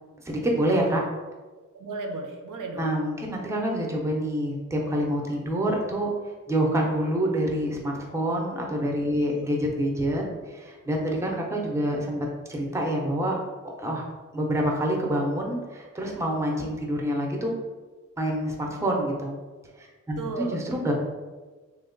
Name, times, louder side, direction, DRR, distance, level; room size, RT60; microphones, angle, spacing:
voice 1, 0.2-1.0 2.8-13.4 13.8-14.1 14.3-17.5 18.2-19.4 19.8-20.9, right 1 dB, 10° right, 0 dB, 0.4 m, -27 dB
voice 2, 1.7-3.0 9.3-9.5 9.8-9.9 20.2-20.7, right 3 dB, 80° right, 3 dB, 0.5 m, -35 dB
2.9 x 2.2 x 3.7 m, 1.3 s
wide cardioid pair, 140°, 31 cm